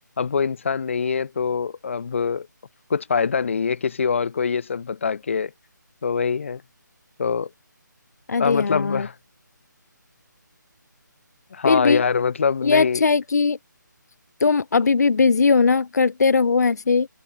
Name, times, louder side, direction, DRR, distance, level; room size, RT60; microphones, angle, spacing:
voice 1, 0.2-2.5 2.9-5.5 6.0-6.6 7.2-7.5 8.4-9.1 11.5-13.1, left 6 dB, 40° left, 2.4 m, -24 dB
voice 2, 8.3-9.1 11.6-12.0 12.6-13.6 14.4-17.1, left 4 dB, 55° left, 0.9 m, -19 dB
figure-of-eight pair, 170°, 10 cm